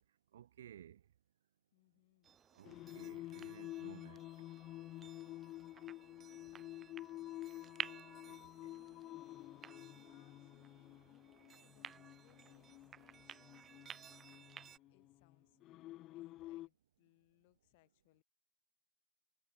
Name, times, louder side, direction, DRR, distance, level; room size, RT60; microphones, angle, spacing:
voice 1, 0.3-1.0 2.5-4.2 8.3-8.8, right 10 dB, 65° right, 1.4 m, -57 dB
voice 2, 1.7-2.4 6.3-7.5 9.9-14.1 14.7-18.2, left 23 dB, 50° left, 2.1 m, -73 dB
sound 1, 2.2-14.8, right 8 dB, 20° right, 0.4 m, -54 dB
Singing, 2.6-16.7, left 15 dB, 35° left, 0.4 m, -50 dB
hypercardioid pair, 105°, 0 cm